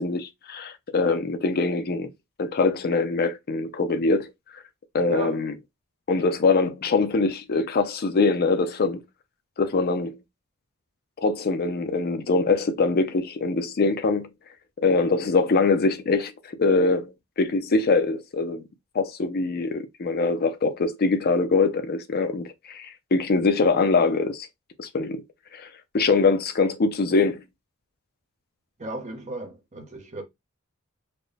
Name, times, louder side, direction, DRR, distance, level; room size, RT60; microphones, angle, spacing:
voice 1, 0.0-2.1 2.4-4.3 4.9-5.5 6.1-9.0 9.6-10.2 11.2-14.3 14.8-16.3 16.6-18.6 18.9-24.5 24.8-25.2 25.5-25.7 25.9-27.4, left 3 dB, 45° left, 0.5 m, -23 dB
voice 2, 5.1-5.4 28.8-30.2, right 2 dB, 35° right, 0.9 m, -34 dB
4.2 x 2.2 x 3.2 m
head